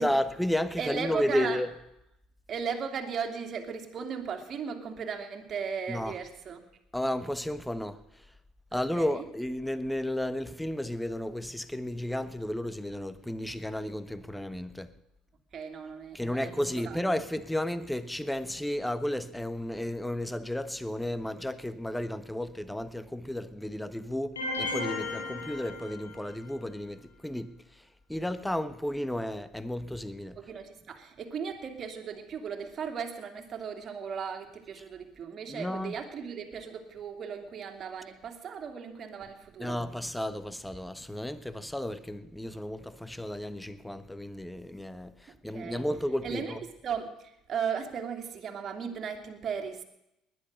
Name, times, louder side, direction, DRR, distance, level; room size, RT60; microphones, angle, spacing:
voice 1, 0.0-1.8 5.9-6.2 6.9-8.2 8.7-14.9 16.1-30.4 34.8-34.9 35.5-36.0 39.6-46.7, left 1 dB, 5° left, 1.2 m, -33 dB
voice 2, 0.8-1.6 2.5-6.6 8.7-9.2 15.5-17.0 30.4-39.8 45.3-45.8 46.2-49.8, right 6 dB, 45° right, 2.8 m, -36 dB
sound 1, 24.4-26.5, left 2 dB, 90° left, 2.8 m, -35 dB
20.0 x 11.0 x 6.6 m
hypercardioid pair, 60°, 0 cm